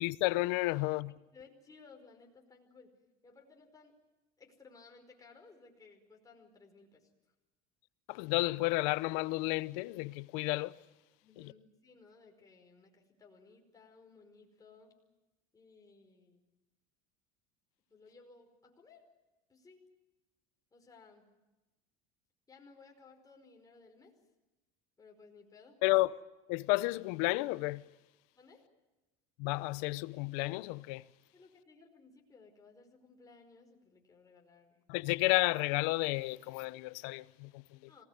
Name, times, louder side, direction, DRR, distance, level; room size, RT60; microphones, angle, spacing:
voice 1, 0.0-1.1 8.1-10.8 11.4-11.5 25.8-26.1 26.5-27.8 29.4-31.0 34.9-37.9, left 21 dB, 75° left, 0.8 m, -32 dB
voice 2, 1.3-2.9 3.2-3.9 4.4-7.1 11.2-14.9 15.5-16.4 17.9-19.0 19.5-19.8 20.7-21.3 22.5-24.1 25.0-25.8 28.3-28.6 31.3-34.9 37.9-38.0, left 4 dB, 20° left, 5.0 m, -59 dB
26.0 x 19.0 x 9.3 m
supercardioid pair, 115°, 18 cm